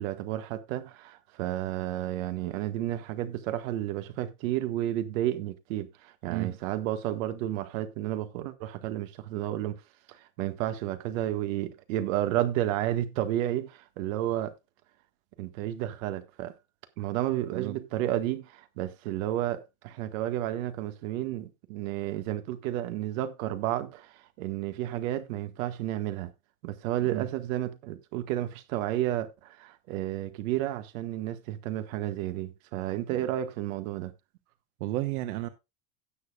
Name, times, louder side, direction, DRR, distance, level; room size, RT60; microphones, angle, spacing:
voice 1, 0.0-9.7 10.1-14.5 15.4-16.5 17.0-26.3 26.6-34.1, right 13 dB, 65° right, 1.7 m, -31 dB
voice 2, 34.8-35.5, right 15 dB, 85° right, 1.1 m, -32 dB
17.0 x 6.7 x 2.4 m
cardioid pair, 175°, 43 cm